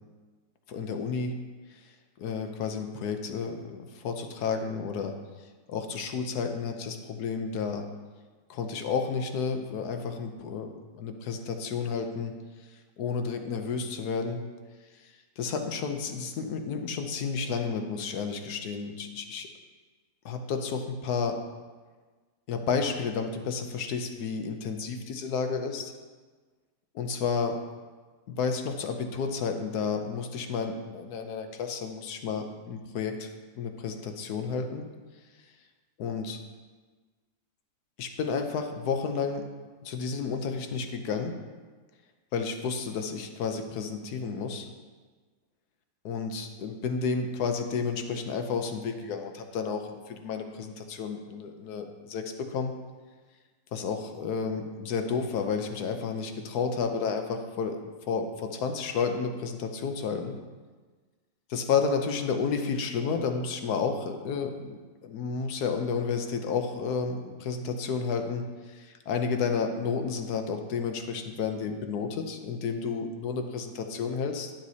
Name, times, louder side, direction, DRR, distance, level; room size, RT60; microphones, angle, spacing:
voice 1, 0.7-1.4 2.2-5.1 5.7-7.9 8.5-12.3 13.0-14.4 15.4-19.5 20.2-21.4 22.5-25.9 26.9-27.6 28.3-33.3 33.6-34.8 36.0-36.4 38.0-39.4 39.8-41.3 42.3-44.7 46.0-52.7 53.7-57.8 58.1-60.4 61.5-68.4 68.8-74.5, left 5 dB, 80° left, 5 dB, 1.3 m, -31 dB
11.0 x 7.3 x 2.8 m, 1.4 s
omnidirectional pair, 1.7 m